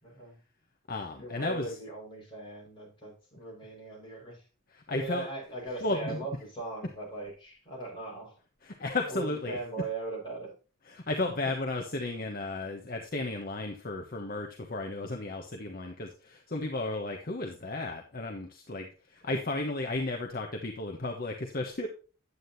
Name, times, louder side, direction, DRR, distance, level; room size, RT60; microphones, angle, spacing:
voice 1, 0.0-0.4 1.2-4.4 4.9-8.4 9.1-10.5, right 3 dB, 25° left, -3 dB, 5.4 m, -39 dB
voice 2, 0.9-1.7 4.7-5.3 5.8-6.2 8.6-9.6 10.9-21.9, left 2 dB, 45° left, 3 dB, 1.1 m, -34 dB
9.6 x 8.7 x 2.7 m, 0.36 s
head